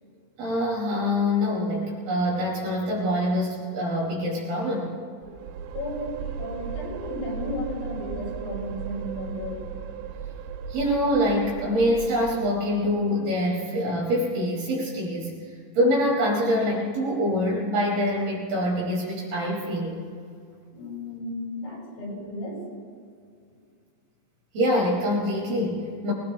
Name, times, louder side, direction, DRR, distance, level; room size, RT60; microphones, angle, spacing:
voice 1, 0.4-4.9 10.7-15.3 15.7-20.0 24.5-26.1, equal, 60° right, -4 dB, 6.7 m, -25 dB
sound 1, 5.2-13.1, right 7 dB, 80° right, 2.5 m, -36 dB
voice 2, 5.7-9.6 20.7-22.6, left 1 dB, 85° left, -4 dB, 7.3 m, -34 dB
24.5 x 19.5 x 3.0 m, 2.2 s
omnidirectional pair, 5.1 m